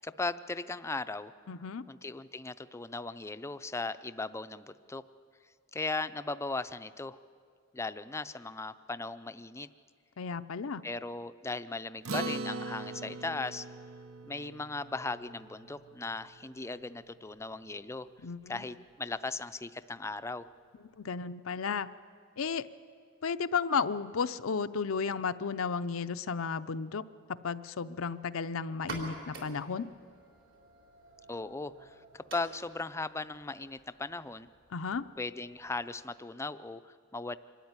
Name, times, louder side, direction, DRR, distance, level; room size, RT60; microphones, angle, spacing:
voice 1, 0.0-1.3 1.9-5.0 5.7-7.2 7.7-9.7 10.8-13.7 14.2-18.1 18.5-20.5 31.3-34.5 35.2-37.4, left 3 dB, 15° left, 13 dB, 0.5 m, -38 dB
voice 2, 1.5-1.8 10.2-10.8 18.2-18.7 21.0-21.9 22.4-22.7 23.2-27.0 27.4-29.9 34.7-35.1, left 5 dB, 75° left, 11 dB, 0.6 m, -33 dB
Acoustic guitar, 12.0-16.7, right 2 dB, 90° right, 0.8 m, -41 dB
sound 1, 28.7-36.2, right 2 dB, 65° right, 3.9 m, -49 dB
24.5 x 13.0 x 9.6 m, 2.2 s
head